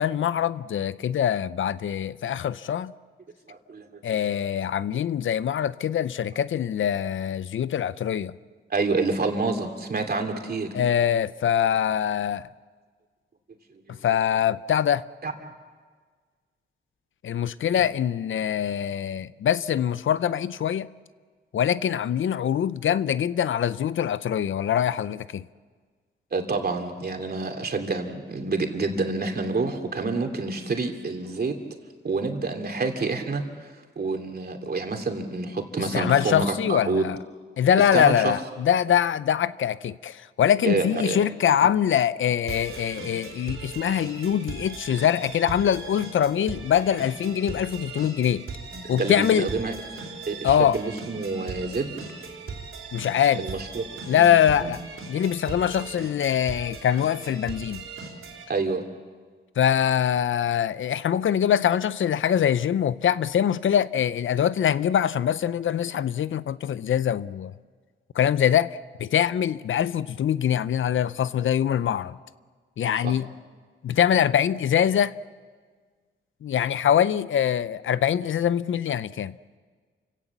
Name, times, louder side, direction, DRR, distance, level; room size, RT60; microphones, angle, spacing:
voice 1, 0.0-2.9 4.0-8.3 10.7-12.5 13.9-15.0 17.2-20.9 21.5-25.4 35.9-37.2 37.6-48.5 48.9-49.5 50.4-50.8 52.9-53.5 54.1-54.8 55.1-57.8 59.6-67.5 68.1-72.2 72.8-73.3 73.8-75.2 76.4-79.6, left 9 dB, 70° left, 0.6 m, -23 dB
voice 2, 3.5-4.0 8.7-10.8 13.7-13.8 15.2-15.3 26.3-31.6 32.0-37.1 37.9-38.3 40.6-41.3 41.6-41.7 48.7-49.7 50.2-52.0 53.3-54.3 54.6-54.7 58.5-58.8 73.0-73.2, right 3 dB, 50° right, 2.8 m, -28 dB
sound 1, 42.5-58.4, right 4 dB, 80° right, 4.1 m, -39 dB
28.5 x 17.0 x 7.3 m
cardioid pair, 90°, 21 cm